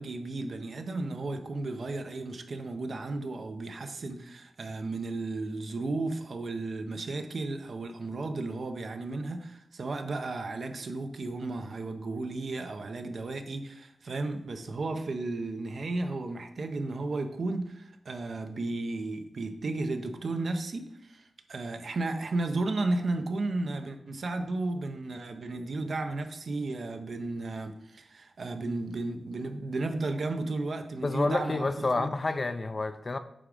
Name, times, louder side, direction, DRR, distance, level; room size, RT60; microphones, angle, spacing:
voice 1, 0.0-31.7 32.0-32.1, right 2 dB, 55° right, 0.8 m, -34 dB
voice 2, 31.0-33.2, left 3 dB, 30° left, 0.5 m, -29 dB
8.7 x 3.6 x 5.0 m
wide cardioid pair, 125°, 0 cm